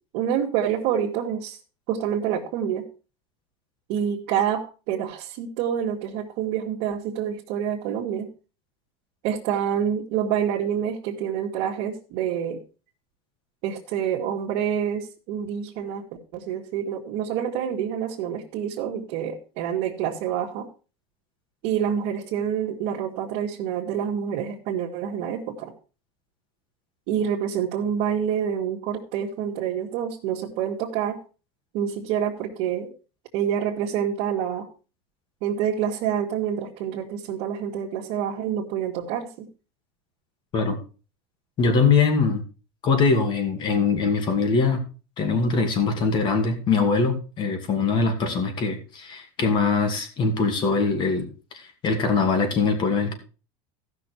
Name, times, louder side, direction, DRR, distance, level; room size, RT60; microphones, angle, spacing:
voice 1, 0.1-1.6 1.9-2.9 3.9-8.3 9.2-12.6 13.6-16.0 16.3-20.7 21.6-25.7 27.1-31.2 31.7-32.9 33.3-34.7 35.4-39.5, right 9 dB, 60° right, -3 dB, 1.8 m, -27 dB
voice 2, 41.6-42.4 42.8-44.8 45.2-51.3 51.5-53.1, left 4 dB, 35° left, 6 dB, 2.4 m, -22 dB
15.5 x 6.1 x 4.5 m, 0.34 s
supercardioid pair, 150°, 14 cm